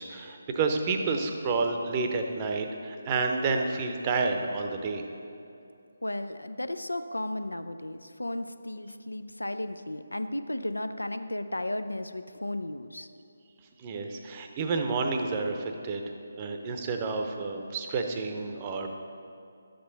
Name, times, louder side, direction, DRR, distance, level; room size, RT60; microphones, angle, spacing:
voice 1, 0.0-5.0 13.8-16.0 16.4-18.9, right 4 dB, 25° right, 4 dB, 0.8 m, -30 dB
voice 2, 6.0-13.1, left 1 dB, 80° left, 10 dB, 0.5 m, -34 dB
11.0 x 7.7 x 4.0 m, 2.7 s
figure-of-eight pair, 150°, 0 cm